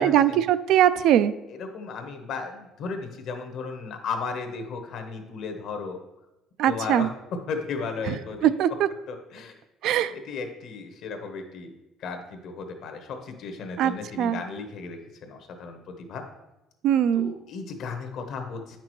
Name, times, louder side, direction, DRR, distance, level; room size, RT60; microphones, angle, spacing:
voice 1, 0.0-1.3 6.6-7.1 8.1-8.2 8.4-8.9 9.8-10.1 13.8-13.9 14.2-14.4 16.8-17.3, right 10 dB, 70° right, 13 dB, 0.3 m, -21 dB
voice 2, 1.5-6.0 6.7-8.5 9.1-9.5 10.1-11.7 12.0-16.2 17.1-18.8, left 4 dB, 60° left, 5 dB, 1.1 m, -35 dB
8.9 x 5.9 x 3.1 m, 0.97 s
cardioid pair, 135°, 0 cm